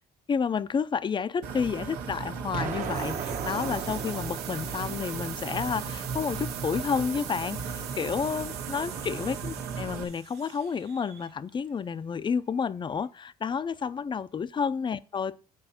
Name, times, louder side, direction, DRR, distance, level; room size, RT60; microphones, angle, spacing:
voice 1, 0.3-15.4, left 6 dB, 30° left, 0.5 m, -30 dB
sound 1, 1.4-10.0, right 5 dB, 90° right, 1.7 m, -36 dB
Explosion, 2.5-5.5, right 6 dB, 50° right, 1.3 m, -36 dB
sound 2, 2.7-11.6, right 10 dB, 75° right, 0.9 m, -42 dB
9.0 x 4.6 x 7.1 m
cardioid pair, 110°, 17 cm